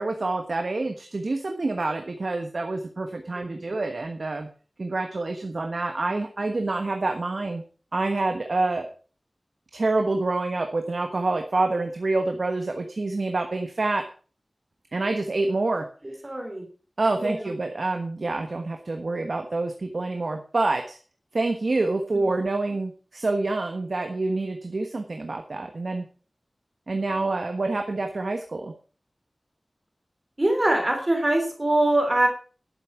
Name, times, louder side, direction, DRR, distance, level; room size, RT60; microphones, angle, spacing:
voice 1, 0.0-4.5 4.8-7.6 7.9-8.9 9.7-14.0 14.9-15.9 17.0-21.0 21.3-26.0 26.9-28.7, right 2 dB, 70° right, 5 dB, 1.3 m, -27 dB
voice 2, 16.2-16.6 17.2-17.5 30.4-32.3, right 1 dB, 30° right, 3 dB, 3.1 m, -23 dB
11.5 x 8.2 x 5.9 m, 0.39 s
wide cardioid pair, 70°, 0 cm